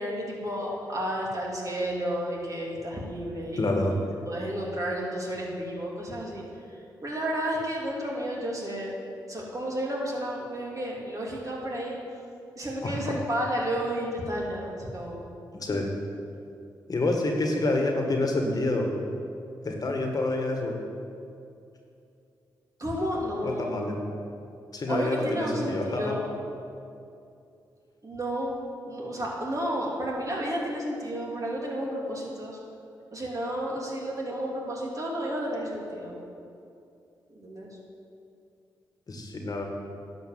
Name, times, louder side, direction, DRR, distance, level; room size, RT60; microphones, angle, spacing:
voice 1, 0.0-6.4 7.0-8.9 9.3-12.0 12.6-15.3 22.8-23.9 24.9-26.3 28.0-28.6 28.8-32.6 33.1-36.2 37.3-37.7, equal, 40° right, -3 dB, 2.9 m, -32 dB
voice 2, 3.6-4.0 12.8-13.0 15.5-15.9 16.9-18.9 19.6-20.8 23.4-24.0 24.7-26.2 39.1-39.6, left 2 dB, 45° left, 2 dB, 1.7 m, -27 dB
11.0 x 5.3 x 7.4 m, 2.5 s
supercardioid pair, 45°, 9 cm